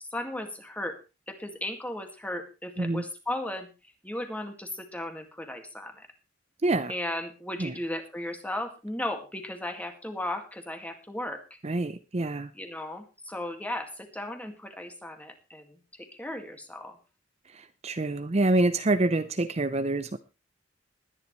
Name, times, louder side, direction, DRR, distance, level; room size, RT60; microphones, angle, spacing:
voice 1, 0.1-1.0 1.3-3.7 4.0-6.1 6.9-11.4 12.5-15.6 16.0-17.0, left 1 dB, 10° left, 5 dB, 2.1 m, -36 dB
voice 2, 6.6-6.9 7.6-7.7 11.6-12.5 17.8-20.2, right 2 dB, 35° right, 10 dB, 0.7 m, -26 dB
20.0 x 10.0 x 3.2 m, 0.30 s
head